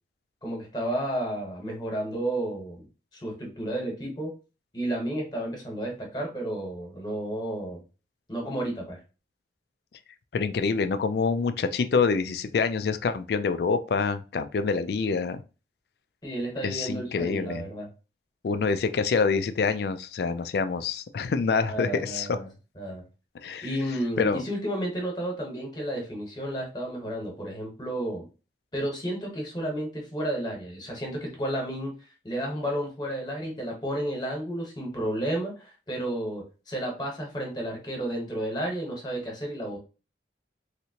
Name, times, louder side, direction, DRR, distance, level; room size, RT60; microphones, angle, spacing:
voice 1, 0.4-2.8 3.1-4.3 4.7-7.8 8.3-9.0 16.2-17.9 21.7-22.5 22.8-23.0 23.6-28.2 28.7-31.9 32.2-39.8, right 1 dB, 25° left, 0 dB, 1.1 m, -32 dB
voice 2, 10.3-15.4 16.6-17.7 18.4-22.4 23.4-23.7 24.2-24.4, left 5 dB, 60° left, 11 dB, 0.3 m, -26 dB
3.2 x 2.8 x 2.8 m, 0.32 s
head